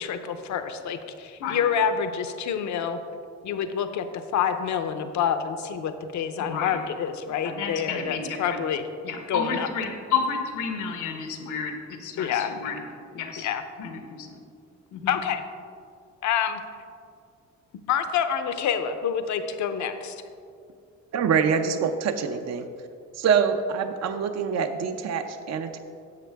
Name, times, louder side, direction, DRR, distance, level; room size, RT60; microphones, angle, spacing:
voice 1, 0.0-3.0 3.4-8.8 9.3-9.7 12.2-12.5 13.4-13.6 15.1-15.4 16.2-16.6 17.9-20.2, left 8 dB, 70° left, 9 dB, 0.7 m, -27 dB
voice 2, 6.4-6.8 7.3-8.6 9.0-12.8 13.1-13.5 13.8-14.4 14.9-15.2, left 6 dB, 90° left, 4 dB, 1.2 m, -31 dB
voice 3, 21.1-22.7 23.2-25.8, right 6 dB, 60° right, 8 dB, 0.6 m, -25 dB
10.5 x 7.5 x 3.5 m, 2.4 s
cardioid pair, 90°, 30 cm